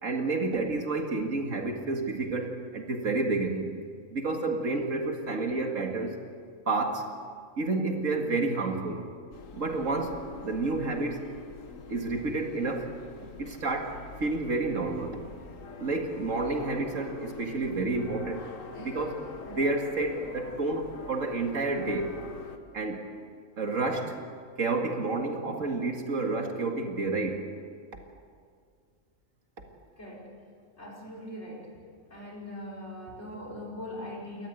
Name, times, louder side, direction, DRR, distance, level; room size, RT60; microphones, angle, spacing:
voice 1, 0.0-3.7 4.1-6.2 6.7-7.1 7.6-9.0 9.5-11.3 11.9-12.9 13.4-15.3 15.8-18.5 18.8-22.2 22.7-23.0 23.6-24.2 24.6-27.5, right 3 dB, 75° right, 3 dB, 2.4 m, -30 dB
sound 1, 9.3-22.6, left 5 dB, 70° left, 1.8 m, -45 dB
voice 2, 30.0-30.3 30.8-31.7 32.1-34.5, left 1 dB, 55° left, -3 dB, 5.5 m, -41 dB
29.5 x 13.5 x 8.1 m, 2.1 s
omnidirectional pair, 1.4 m